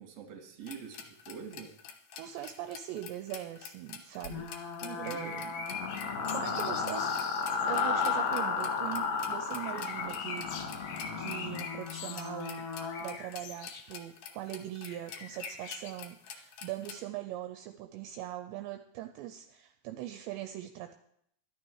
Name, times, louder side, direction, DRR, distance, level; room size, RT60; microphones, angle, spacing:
voice 1, 0.0-1.7 4.8-5.4 9.7-10.2, right 7 dB, 50° right, 3 dB, 2.3 m, -45 dB
sound 1, 0.7-17.0, left 7 dB, 75° left, 2.1 m, -47 dB
voice 2, 2.1-4.5 5.0-5.5 6.0-7.2 7.7-10.5 10.7-12.7 13.0-20.9, right 12 dB, 80° right, 7 dB, 2.6 m, -41 dB
sound 2, 4.2-13.1, left 5 dB, 45° left, 1.5 m, -34 dB
sound 3, 5.0-7.7 9.6-13.9 14.8-15.9, left 5 dB, 90° left, 1.8 m, -44 dB
11.5 x 11.5 x 4.7 m, 0.72 s
omnidirectional pair, 5.4 m